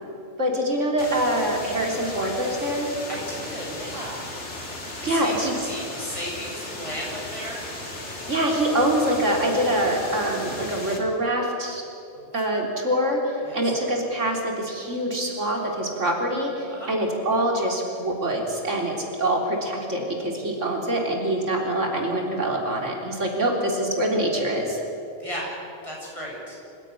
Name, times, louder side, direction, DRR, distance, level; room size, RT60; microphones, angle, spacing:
voice 1, 0.4-2.9 5.0-5.5 8.3-11.8 12.3-13.2 13.5-24.8, right 1 dB, 80° right, 0 dB, 3.9 m, -25 dB
sound 1, 1.0-11.0, left 2 dB, 65° left, 3.5 m, -36 dB
voice 2, 3.1-4.3 5.0-7.6 12.1-12.6 13.4-13.6 16.7-16.9 23.4-23.5 25.2-25.5 25.8-26.6, equal, 25° left, -3 dB, 7.6 m, -35 dB
26.0 x 16.5 x 9.9 m, 2.7 s
omnidirectional pair, 1.3 m